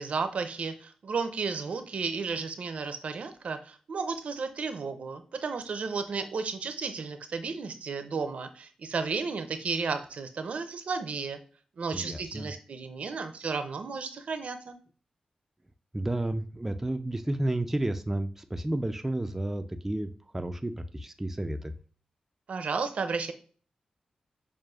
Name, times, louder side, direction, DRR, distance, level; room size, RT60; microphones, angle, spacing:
voice 1, 0.0-11.4 11.8-14.8 22.5-23.3, right 4 dB, 70° right, 8 dB, 0.5 m, -33 dB
voice 2, 11.9-12.5 15.9-21.7, right 1 dB, 15° right, 6 dB, 0.3 m, -31 dB
6.2 x 2.4 x 2.3 m, 0.42 s
cardioid pair, 75°, 2 cm